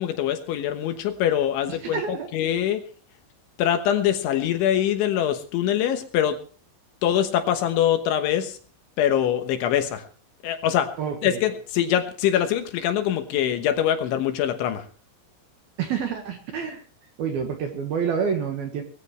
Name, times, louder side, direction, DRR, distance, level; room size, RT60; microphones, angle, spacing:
voice 1, 0.0-2.9 3.6-6.4 7.0-8.6 9.0-10.0 10.4-10.9 11.2-14.9, left 10 dB, 70° left, 7 dB, 3.3 m, -23 dB
voice 2, 1.8-2.3 11.0-11.4 15.8-16.8 17.2-18.8, right 6 dB, 65° right, 5 dB, 2.7 m, -28 dB
20.5 x 15.5 x 3.2 m, 0.40 s
omnidirectional pair, 6.0 m